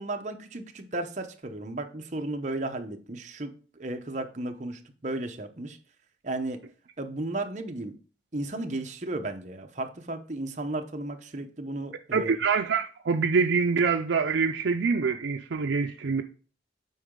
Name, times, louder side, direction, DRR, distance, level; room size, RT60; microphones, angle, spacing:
voice 1, 0.0-5.8 6.2-6.6 7.0-8.0 8.3-12.3, right 2 dB, 40° right, 0.8 m, -34 dB
voice 2, 12.1-16.2, right 5 dB, 90° right, 0.5 m, -25 dB
8.3 x 4.8 x 3.7 m
head